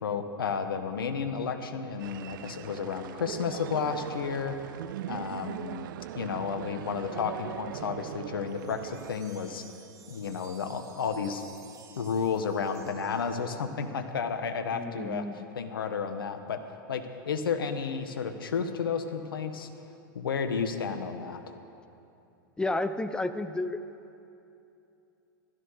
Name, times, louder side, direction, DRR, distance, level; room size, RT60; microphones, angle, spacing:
voice 1, 0.0-4.6 5.1-9.6 10.1-11.4 12.0-15.2 15.6-16.6 16.9-19.7 20.1-21.5, left 6 dB, 80° left, 8 dB, 1.3 m, -32 dB
sound 1, 2.0-9.1, right 13 dB, 65° right, 0.4 m, -40 dB
sound 2, 8.5-13.8, right 6 dB, 25° right, 2.0 m, -55 dB
voice 2, 14.7-15.5 22.6-23.8, left 2 dB, 5° left, 11 dB, 0.7 m, -31 dB
15.5 x 13.0 x 6.6 m, 2.8 s
hypercardioid pair, 100°, 12 cm